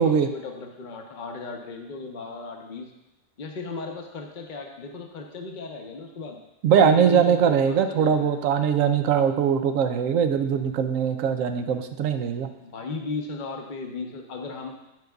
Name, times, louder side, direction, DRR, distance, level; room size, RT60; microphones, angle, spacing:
voice 1, 0.0-2.9 3.4-6.4 6.8-8.4 12.6-14.8, left 3 dB, 40° left, 2 dB, 0.8 m, -35 dB
voice 2, 6.6-12.5, right 7 dB, 70° right, 8 dB, 0.9 m, -21 dB
12.0 x 5.2 x 2.3 m, 0.92 s
omnidirectional pair, 1.5 m